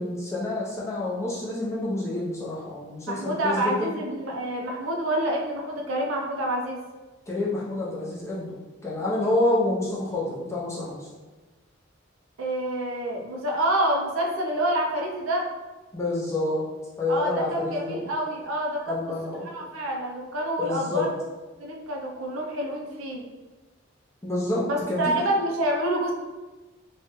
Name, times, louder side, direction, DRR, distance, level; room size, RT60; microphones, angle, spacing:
voice 1, 0.0-4.0 7.3-8.6 8.8-11.1 15.9-16.6 17.0-18.1 18.9-19.5 20.6-21.1 24.2-25.0, left 2 dB, 15° left, -6 dB, 0.6 m, -28 dB
voice 2, 3.1-6.8 12.4-15.5 17.1-18.9 19.5-21.1 21.6-23.2 24.6-26.1, right 1 dB, 90° right, -1 dB, 0.6 m, -27 dB
3.1 x 2.3 x 2.9 m, 1.2 s
head